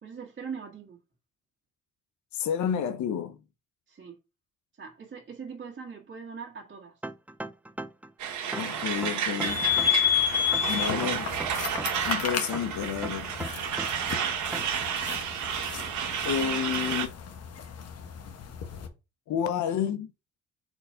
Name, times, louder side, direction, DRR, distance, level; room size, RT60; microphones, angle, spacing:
voice 1, 0.0-1.0 3.9-4.2 4.8-7.0 16.4-17.0, right 6 dB, 40° right, 1.7 m, -42 dB
voice 2, 2.3-3.4 8.5-9.7 10.7-11.3 12.0-13.3 16.2-17.1 19.3-20.1, left 8 dB, 70° left, 0.8 m, -30 dB
sound 1, 7.0-8.1 8.5-10.1 10.5-12.1 12.5-14.1 14.5-14.8, right 2 dB, 5° right, 0.4 m, -38 dB
Truck, 8.2-17.1, right 8 dB, 75° right, 1.3 m, -31 dB
sound 2, 9.4-18.9, left 9 dB, 55° left, 1.2 m, -31 dB
4.5 x 4.0 x 5.5 m
cardioid pair, 90°, 30 cm